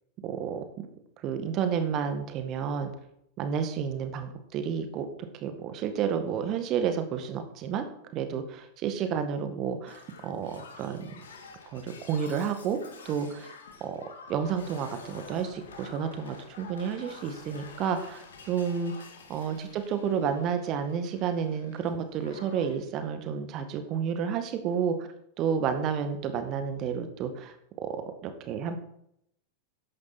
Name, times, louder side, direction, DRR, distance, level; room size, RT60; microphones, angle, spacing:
voice 1, 0.2-0.9 1.2-2.9 3.4-5.1 5.3-7.9 8.1-11.1 11.7-12.8 13.1-14.0 14.3-18.9 19.3-24.9 25.4-27.5 27.8-28.8, right 7 dB, 35° right, 8 dB, 1.8 m, -31 dB
Shatter, 9.9-21.9 22.2-22.8 23.8-24.0, left 4 dB, 65° left, 2.3 m, -49 dB
14.0 x 10.5 x 4.4 m, 0.75 s
figure-of-eight pair, 90°, 0 cm